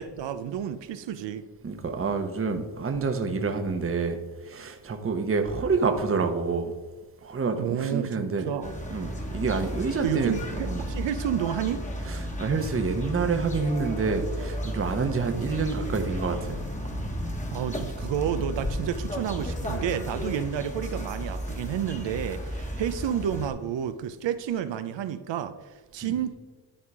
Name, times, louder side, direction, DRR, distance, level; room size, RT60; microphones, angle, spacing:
voice 1, 0.0-1.5 7.6-8.7 10.0-11.8 17.5-25.6 25.9-26.4, right 9 dB, 70° right, 11 dB, 0.7 m, -30 dB
voice 2, 1.6-6.7 7.2-8.5 8.9-10.3 10.6-10.9 12.1-16.6 26.0-26.1, right 4 dB, 30° right, 5 dB, 1.0 m, -28 dB
sound 1, 8.6-23.5, equal, 15° left, 1.4 m, -33 dB
11.0 x 3.7 x 4.8 m, 1.3 s
cardioid pair, 75°, 46 cm